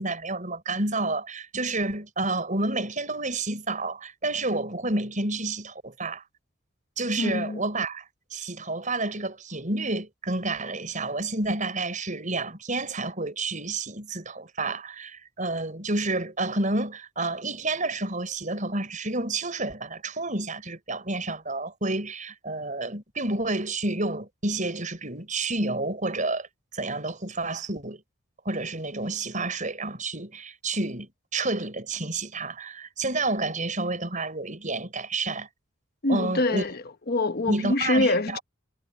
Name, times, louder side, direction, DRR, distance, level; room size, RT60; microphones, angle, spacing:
voice 1, 0.0-6.2 7.0-8.0 8.3-26.5 26.7-28.0 28.4-35.5 36.1-36.6 37.5-38.4, right 2 dB, 40° right, 6.2 m, -29 dB
voice 2, 7.2-7.6 36.0-38.4, left 2 dB, 50° left, 1.1 m, -25 dB
head